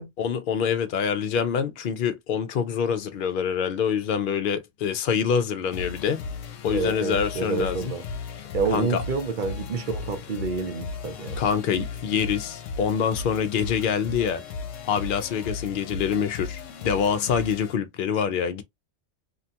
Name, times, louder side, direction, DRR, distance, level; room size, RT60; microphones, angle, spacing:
voice 1, 0.2-6.2 6.6-7.9 8.7-9.0 11.4-14.4 14.9-18.6, left 7 dB, 60° left, 0.6 m, -25 dB
sound 1, 5.7-17.7, left 4 dB, 80° left, 1.0 m, -36 dB
voice 2, 6.7-8.0 8.5-11.4, right 4 dB, 50° right, 0.7 m, -28 dB
2.8 x 2.3 x 2.7 m
omnidirectional pair, 1.3 m